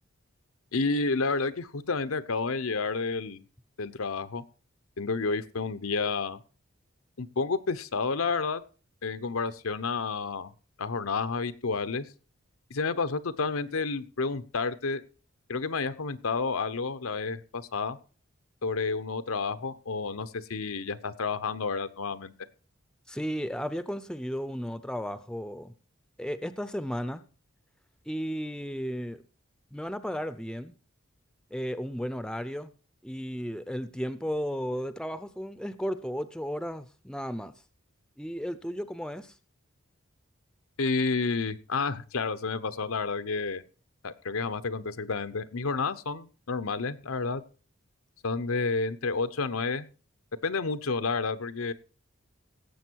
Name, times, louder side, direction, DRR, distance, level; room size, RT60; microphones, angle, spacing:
voice 1, 0.7-3.4 3.8-4.4 5.0-6.4 7.2-8.6 9.0-10.5 10.8-12.1 12.7-15.0 15.5-18.0 18.6-22.3 40.8-43.6 44.0-47.4 48.2-49.9 50.4-51.7, left 4 dB, 85° left, 12 dB, 0.8 m, -30 dB
voice 2, 23.1-25.7 26.2-27.2 28.1-29.2 29.7-30.7 31.5-32.7 33.0-37.5 38.2-39.3, equal, 5° left, 13 dB, 0.5 m, -34 dB
17.0 x 7.7 x 4.6 m, 0.37 s
head